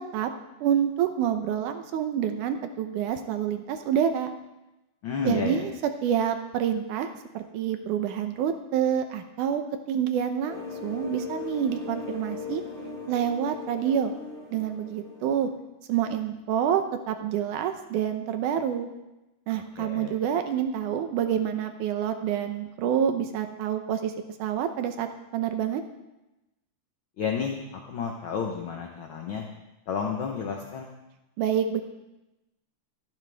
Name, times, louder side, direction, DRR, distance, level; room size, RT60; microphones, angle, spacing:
voice 1, 0.6-4.3 5.2-5.7 6.0-7.1 7.3-12.6 13.1-14.1 14.5-15.5 15.9-18.9 19.5-24.1 24.4-25.8 31.4-31.8, right 9 dB, 80° right, 7 dB, 2.3 m, -27 dB
voice 2, 5.0-5.6 19.8-20.1 27.2-27.6 27.9-29.5 29.9-30.9, left 6 dB, 65° left, 2 dB, 1.2 m, -31 dB
sound 1, 10.5-15.5, left 5 dB, 25° left, 5.9 m, -38 dB
27.5 x 9.4 x 3.5 m, 0.98 s
omnidirectional pair, 3.6 m